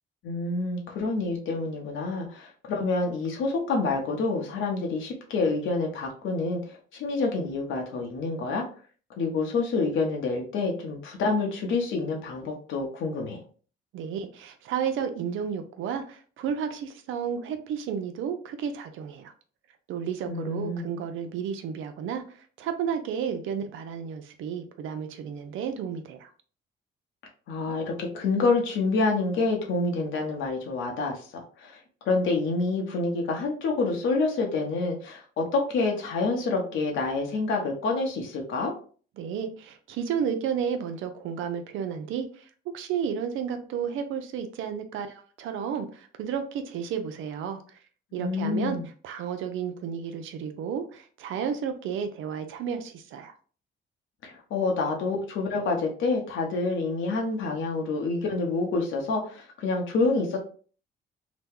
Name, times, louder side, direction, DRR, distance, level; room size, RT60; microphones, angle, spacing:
voice 1, 0.2-8.6 9.2-13.4 20.3-20.9 27.5-31.8 32.0-38.7 48.1-48.8 54.2-60.4, left 3 dB, 75° left, 1 dB, 0.9 m, -27 dB
voice 2, 13.9-19.3 19.9-22.2 22.6-26.3 39.2-42.4 42.7-47.6 48.1-48.8 49.0-53.3, right 7 dB, 80° right, 8 dB, 0.5 m, -32 dB
2.9 x 2.2 x 3.5 m, 0.42 s
cardioid pair, 90°, 20 cm